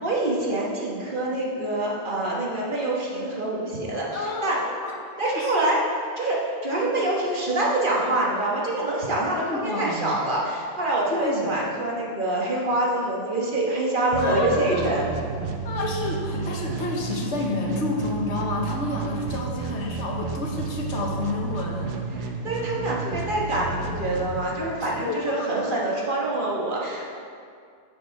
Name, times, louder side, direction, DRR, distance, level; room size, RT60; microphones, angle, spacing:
voice 1, 0.0-4.6 5.2-5.8 6.2-15.1 22.1-27.1, right 2 dB, 50° right, -4 dB, 1.5 m, -26 dB
voice 2, 4.1-4.9 5.2-5.7 9.4-10.2 11.1-11.5 14.2-14.8 15.6-21.9 24.8-25.7, left 3 dB, 85° left, -1 dB, 1.4 m, -30 dB
sound 1, 14.1-25.1, right 5 dB, 85° right, 1.0 m, -32 dB
6.7 x 6.5 x 4.7 m, 2.3 s
omnidirectional pair, 1.2 m